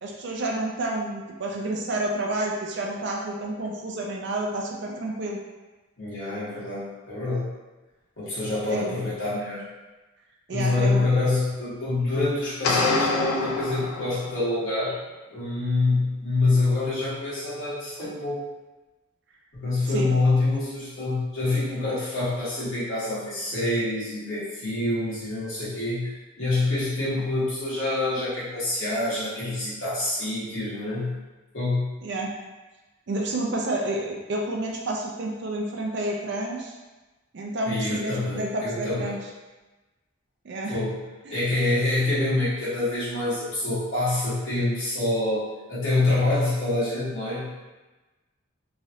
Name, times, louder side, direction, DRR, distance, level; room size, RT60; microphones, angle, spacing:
voice 1, 0.0-5.4 8.7-9.0 10.5-11.1 19.9-20.1 32.0-32.3 33.1-36.7 37.3-39.2 40.4-40.8 41.3-41.7, right 1 dB, 55° right, 0 dB, 0.4 m, -30 dB
voice 2, 6.0-7.5 8.2-9.6 10.5-15.0 15.3-18.4 19.5-31.1 31.5-31.9 37.6-39.2 40.7-41.0 41.3-47.6, left 2 dB, 65° left, -10 dB, 1.3 m, -26 dB
sound 1, 12.6-14.6, left 3 dB, 90° left, 0.5 m, -26 dB
3.1 x 2.4 x 2.7 m, 1.1 s
head